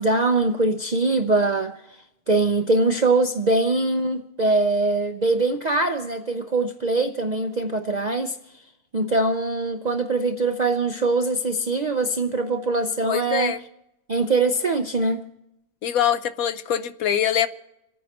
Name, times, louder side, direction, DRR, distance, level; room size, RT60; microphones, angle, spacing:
voice 1, 0.0-1.8 2.3-8.4 8.9-13.5 14.1-15.2, right 2 dB, 50° right, 0.5 m, -22 dB
voice 2, 13.0-13.6 15.8-17.5, left 9 dB, 70° left, 1.1 m, -23 dB
27.0 x 9.4 x 4.2 m
omnidirectional pair, 1.6 m